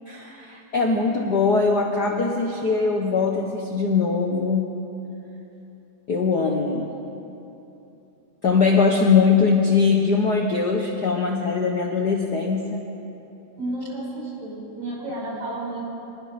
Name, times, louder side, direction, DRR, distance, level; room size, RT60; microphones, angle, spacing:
voice 1, 0.1-4.7 6.1-6.9 8.4-12.8, left 4 dB, 55° left, 1 dB, 1.1 m, -21 dB
voice 2, 13.6-15.9, right 2 dB, 70° right, -4 dB, 7.4 m, -31 dB
25.5 x 20.0 x 5.2 m, 2.9 s
omnidirectional pair, 3.5 m